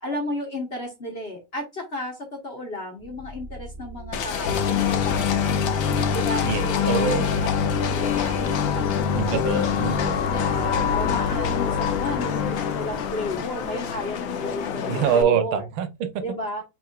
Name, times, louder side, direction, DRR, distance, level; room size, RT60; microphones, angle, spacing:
voice 1, 0.0-5.5 6.1-9.7 10.3-15.6 16.2-16.6, left 1 dB, 40° left, 1.1 m, -33 dB
sound 1, 3.0-15.2, right 2 dB, 20° right, 1.1 m, -40 dB
Livestock farm animals working animals, 4.1-15.2, left 8 dB, 65° left, 0.8 m, -31 dB
sound 2, 4.4-13.4, left 7 dB, 90° left, 1.5 m, -25 dB
voice 2, 6.4-7.3 9.1-10.2 14.9-16.2, right 8 dB, 85° right, 1.6 m, -25 dB
6.0 x 3.6 x 2.4 m
omnidirectional pair, 2.2 m